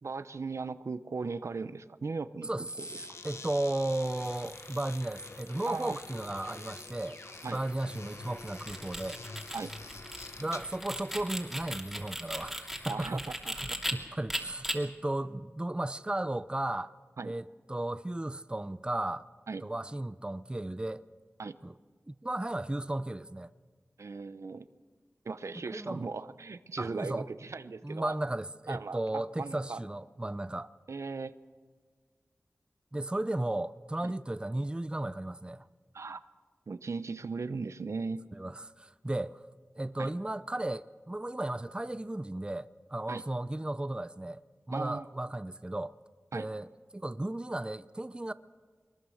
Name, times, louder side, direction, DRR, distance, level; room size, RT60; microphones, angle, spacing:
voice 1, 0.0-2.9 5.6-6.0 7.4-7.6 9.5-9.7 12.9-13.2 13.5-13.8 17.2-17.4 19.5-19.6 21.4-21.5 24.0-24.7 25.2-28.1 28.7-29.8 30.9-31.3 34.0-34.1 35.9-36.2 36.7-38.2 40.0-40.1 43.1-43.2 44.7-45.1 46.3-46.5, right 4 dB, 80° right, 0.7 m, -38 dB
sound 1, 2.6-10.9, left 3 dB, 70° left, 1.3 m, -47 dB
voice 2, 3.2-7.2 7.5-9.2 10.4-13.3 13.5-16.9 17.2-19.2 19.6-21.0 21.6-21.7 22.1-23.5 25.7-26.1 26.8-27.3 27.8-30.7 32.9-35.7 38.3-39.4 39.8-44.4 44.7-45.9 46.3-46.7 46.9-48.3, right 1 dB, 20° right, 0.6 m, -35 dB
sound 2, 3.7-13.6, left 1 dB, 50° left, 4.9 m, -53 dB
sound 3, 8.4-13.9 14.3-14.7, equal, ahead, 3.0 m, -37 dB
22.5 x 20.5 x 6.5 m
wide cardioid pair, 50°, 5 cm